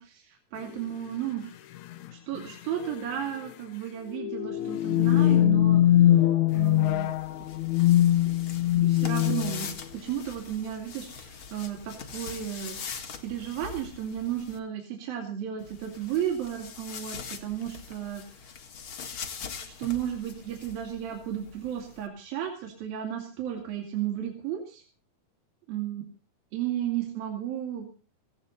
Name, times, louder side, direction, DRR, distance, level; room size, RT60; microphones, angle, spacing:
voice 1, 0.0-1.5 2.1-6.2 6.5-7.1 8.3-8.4 8.7-18.2 19.7-24.8 25.7-26.0 26.5-27.9, right 10 dB, 75° right, 3 dB, 4.3 m, -34 dB
sound 1, 0.7-0.8 1.8-2.1 2.3-2.4 2.9-3.1 4.1-9.8, left 13 dB, 70° left, 1.9 m, -22 dB
sound 2, 6.5-14.6 15.6-22.1, left 6 dB, 45° left, 2.0 m, -43 dB
18.0 x 16.5 x 4.1 m, 0.37 s
omnidirectional pair, 4.2 m